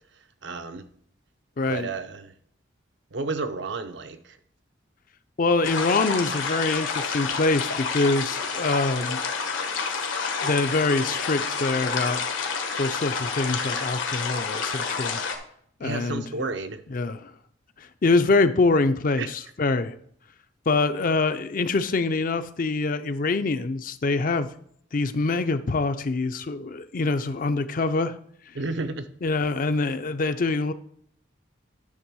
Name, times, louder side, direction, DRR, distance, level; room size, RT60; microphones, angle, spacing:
voice 1, 0.4-0.8 1.7-2.3 3.1-4.2 15.8-16.8 19.2-19.3 28.5-29.1, right 3 dB, 65° right, 0.7 m, -31 dB
voice 2, 1.6-1.9 5.4-9.2 10.4-12.2 12.8-15.2 15.8-16.2 16.9-17.3 17.8-19.9 20.7-24.5 24.9-28.2 29.2-30.7, left 3 dB, 45° left, 0.5 m, -24 dB
sound 1, 5.6-15.4, left 5 dB, 80° left, 1.2 m, -29 dB
9.9 x 3.4 x 6.1 m
head